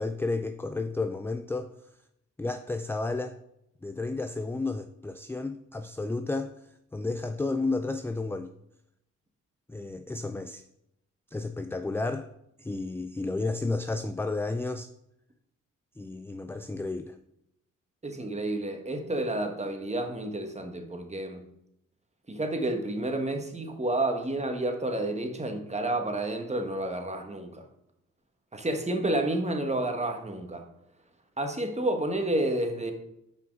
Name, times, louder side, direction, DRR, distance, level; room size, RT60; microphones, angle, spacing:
voice 1, 0.0-1.7 2.4-3.4 3.8-6.5 6.9-8.5 9.7-10.6 11.3-12.3 12.6-14.9 16.0-17.2, left 3 dB, 10° left, 9 dB, 0.4 m, -32 dB
voice 2, 18.0-21.4 22.3-27.7 28.5-30.6 31.4-32.9, right 1 dB, 20° right, 5 dB, 1.3 m, -30 dB
5.8 x 5.0 x 4.6 m, 0.80 s
supercardioid pair, 55°, 31 cm